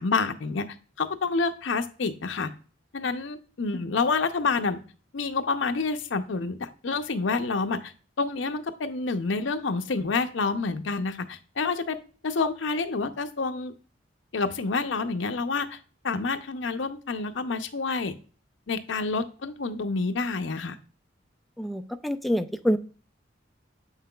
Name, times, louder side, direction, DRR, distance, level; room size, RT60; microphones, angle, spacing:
voice 1, 0.0-2.5 2.9-4.8 5.1-7.9 8.2-12.0 12.2-13.7 14.3-15.8 16.0-18.1 18.7-20.8, left 4 dB, 80° left, 8 dB, 0.6 m, -28 dB
voice 2, 21.6-22.8, equal, ahead, 8 dB, 0.3 m, -26 dB
7.4 x 5.7 x 2.3 m, 0.39 s
head